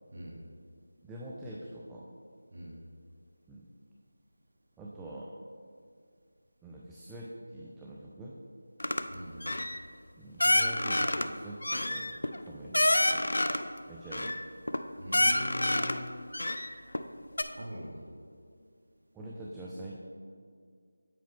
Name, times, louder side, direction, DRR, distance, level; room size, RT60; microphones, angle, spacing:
voice 1, 1.0-2.1 3.5-3.6 4.8-5.4 6.6-8.4 10.2-13.3 13.9-14.4 19.1-20.0, right 1 dB, 5° right, -5 dB, 0.3 m, -44 dB
sound 1, 8.8-9.0 9.4-9.8 10.4-11.3 11.6-13.7 14.1-14.8 15.1-16.0 16.3-17.0 17.4-17.5, left 1 dB, 75° left, 0.4 m, -28 dB
voice 2, 9.1-9.5 10.4-10.5 15.0-16.0 17.5-18.1, equal, 55° right, -2 dB, 1.1 m, -41 dB
7.6 x 4.9 x 3.5 m, 2.2 s
figure-of-eight pair, 170°, 0 cm